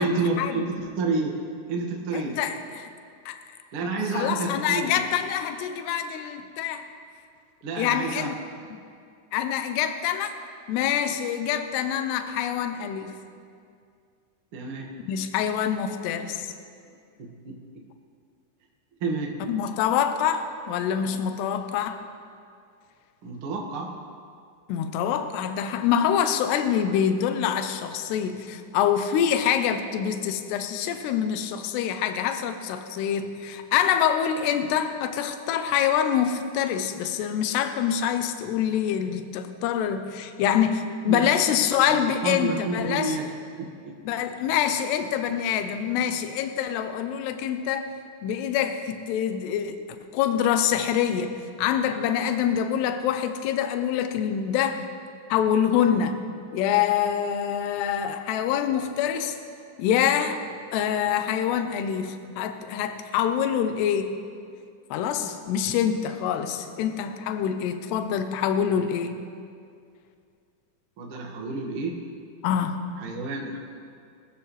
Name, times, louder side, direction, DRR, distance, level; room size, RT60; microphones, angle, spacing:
voice 1, 0.0-1.3 1.7-2.4 3.7-5.0 7.6-8.3 14.5-14.9 17.2-17.6 19.0-19.3 23.2-23.9 41.0-41.3 41.9-43.2 43.6-43.9 71.0-72.0 73.0-73.6, right 3 dB, 65° right, -1 dB, 1.3 m, -29 dB
voice 2, 2.1-2.9 3.3-3.4 4.1-6.9 7.8-8.4 8.7-8.8 9.3-10.3 10.7-13.2 15.0-16.5 19.5-22.0 24.7-43.2 44.0-47.9 48.2-49.8 50.1-54.9 55.3-56.2 56.5-59.4 59.8-60.4 60.7-64.2 64.9-69.2 72.4-72.8, left 9 dB, 75° left, 8 dB, 2.6 m, -25 dB
24.0 x 14.0 x 3.3 m, 2.3 s
omnidirectional pair, 5.5 m